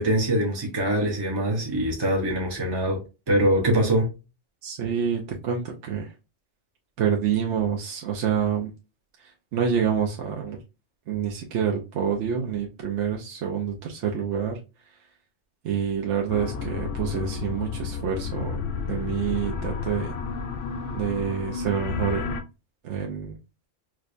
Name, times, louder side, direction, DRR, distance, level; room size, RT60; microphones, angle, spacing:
voice 1, 0.0-4.1, right 1 dB, 25° right, 0.5 m, -23 dB
voice 2, 4.6-6.1 7.0-8.7 9.2-10.6 11.1-14.6 15.6-18.6 18.9-20.1 20.9-22.4 22.8-23.4, right 7 dB, 70° right, 0.9 m, -27 dB
sound 1, 16.3-22.4, left 5 dB, 80° left, 0.9 m, -31 dB
4.7 x 2.2 x 2.4 m
omnidirectional pair, 1.3 m